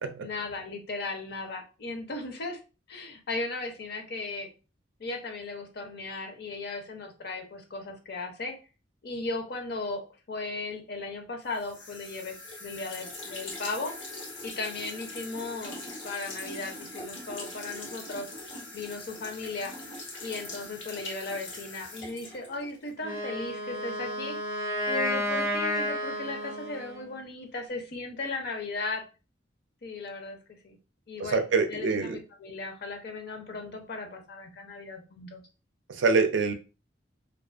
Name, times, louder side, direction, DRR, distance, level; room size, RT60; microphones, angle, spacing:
voice 1, 0.2-2.6 2.9-4.5 5.0-8.5 9.0-10.0 10.3-13.9 14.4-18.3 18.7-19.7 20.2-24.4 24.9-29.0 29.8-30.4 30.6-30.8 31.1-35.4, left 3 dB, 60° left, 0.6 m, -36 dB
sound 1, 11.5-22.9, left 2 dB, 85° left, 1.0 m, -42 dB
Wind instrument woodwind instrument, 23.0-27.1, equal, 15° right, 0.5 m, -31 dB
voice 2, 31.3-32.2 36.0-36.5, right 4 dB, 70° right, 0.4 m, -24 dB
2.3 x 2.3 x 2.4 m
head